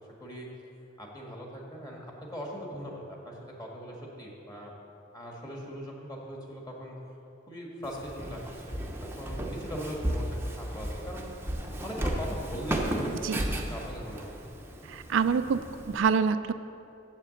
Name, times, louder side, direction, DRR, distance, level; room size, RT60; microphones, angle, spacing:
voice 1, 1.0-3.3 3.6-4.7 5.1-6.9 7.5-11.3 11.8-13.1 13.7-14.3, equal, 20° left, -2 dB, 1.6 m, -40 dB
Walk footsteps, 7.8-16.0, right 1 dB, 10° right, 0.7 m, -34 dB
voice 2, 14.9-16.5, right 6 dB, 70° right, 11 dB, 0.3 m, -26 dB
7.8 x 7.3 x 7.7 m, 2.8 s
head